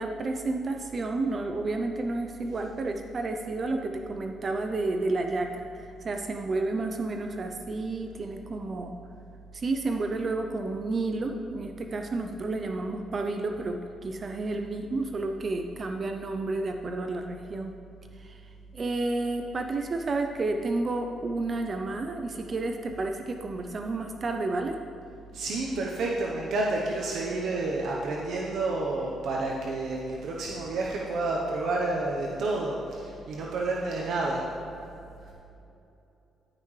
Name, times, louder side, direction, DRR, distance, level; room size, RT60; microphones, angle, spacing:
voice 1, 0.0-8.9 9.5-17.7 18.2-18.4 18.7-24.8, right 2 dB, 40° right, 4 dB, 0.5 m, -31 dB
voice 2, 25.3-34.4, right 2 dB, 70° right, -2 dB, 0.9 m, -30 dB
14.0 x 5.7 x 3.2 m, 2.7 s
cardioid pair, 90°, 0 cm